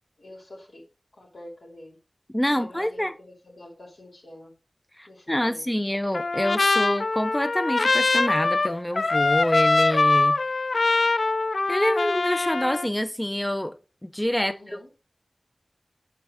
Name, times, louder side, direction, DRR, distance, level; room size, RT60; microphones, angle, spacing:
voice 1, 0.2-0.8 1.1-2.0 2.5-4.5 5.1-5.7 14.4-14.9, left 1 dB, 90° left, 3.4 m, -46 dB
voice 2, 2.3-3.1 5.0-10.4 11.7-13.8 14.0-14.5, left 1 dB, 15° left, 0.5 m, -26 dB
Trumpet, 6.1-12.9, left 3 dB, 70° left, 0.4 m, -23 dB
7.1 x 5.0 x 4.4 m
wide cardioid pair, 60°, 0 cm